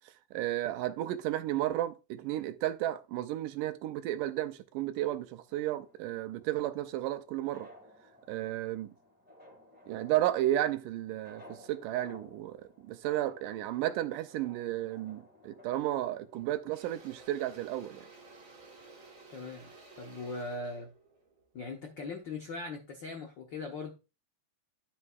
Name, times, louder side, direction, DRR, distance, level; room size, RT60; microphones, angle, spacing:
voice 1, 0.3-7.7 8.3-8.9 9.9-18.1, right 14 dB, 80° right, 2.2 m, -33 dB
sound 1, 5.5-17.2, left 1 dB, 5° right, 1.6 m, -57 dB
Engine / Drill, 15.8-16.0 16.3-22.5, right 3 dB, 60° right, 0.8 m, -54 dB
voice 2, 19.3-19.7 20.0-20.9 21.5-23.9, left 3 dB, 80° left, 1.0 m, -40 dB
12.5 x 5.6 x 2.4 m
omnidirectional pair, 3.8 m